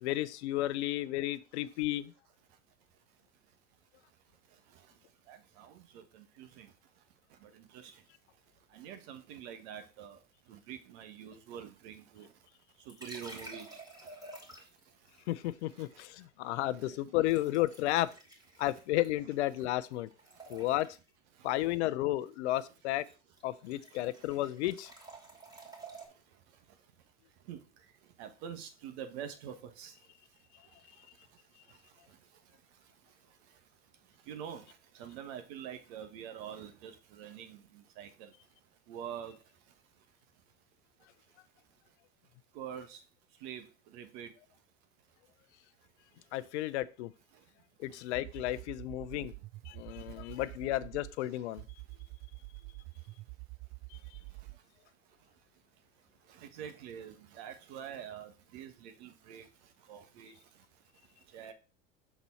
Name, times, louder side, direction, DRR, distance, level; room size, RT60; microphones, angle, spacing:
voice 1, 0.0-2.1 15.3-18.1 18.6-20.1 20.5-20.9 21.4-23.0 23.4-24.9 46.3-47.1 47.8-49.3 49.7-51.6 53.9-54.0, left 16 dB, 70° left, 0.6 m, -33 dB
voice 2, 5.3-6.7 7.4-7.9 8.7-10.2 10.5-12.3 12.9-13.7 16.8-16.9 27.5-27.6 28.2-29.9 34.3-34.6 35.0-38.3 38.9-39.3 42.5-43.0 43.4-43.6 43.9-44.3 56.3-59.5 59.9-60.3 61.3-61.5, right 9 dB, 65° right, 1.3 m, -45 dB
sound 1, 12.9-14.9 17.3-19.7 19.9-21.1 22.9-23.1 23.4-26.1, right 2 dB, 10° right, 2.6 m, -50 dB
sound 2, 48.1-51.2 51.6-54.6, right 24 dB, 40° right, 0.4 m, -47 dB
6.1 x 4.0 x 4.2 m
hypercardioid pair, 85°, 35 cm